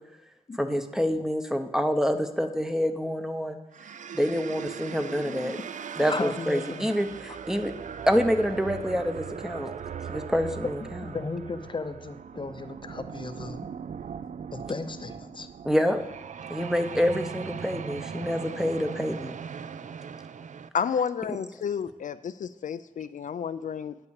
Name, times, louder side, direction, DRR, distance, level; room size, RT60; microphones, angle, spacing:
voice 1, 0.6-3.6 4.1-5.6 6.0-7.7 8.1-9.7 10.1-11.0 15.6-16.0 16.5-19.3, equal, 5° right, 7 dB, 0.7 m, -27 dB
sound 1, 3.7-20.7, right 7 dB, 70° right, 0.4 m, -39 dB
voice 2, 5.3-5.6 6.0-6.9 10.8-13.6 14.5-15.5, left 3 dB, 40° left, 10 dB, 0.7 m, -35 dB
voice 3, 20.7-24.0, left 7 dB, 80° left, 12 dB, 0.4 m, -31 dB
9.3 x 5.7 x 8.0 m, 0.94 s
wide cardioid pair, 125°, 13 cm